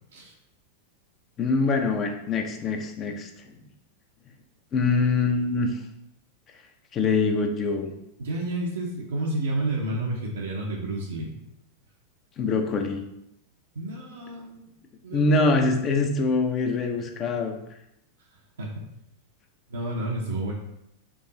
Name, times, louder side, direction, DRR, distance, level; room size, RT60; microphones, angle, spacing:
voice 1, 1.4-3.3 4.7-5.8 6.9-7.9 12.4-13.1 15.1-17.6, left 3 dB, 30° left, 4 dB, 0.6 m, -24 dB
voice 2, 8.2-11.4 13.8-14.6 15.0-15.8 18.6-18.8 19.7-20.5, right 2 dB, 70° right, -3 dB, 0.6 m, -30 dB
4.6 x 2.6 x 3.9 m, 0.82 s
figure-of-eight pair, 90°, 0 cm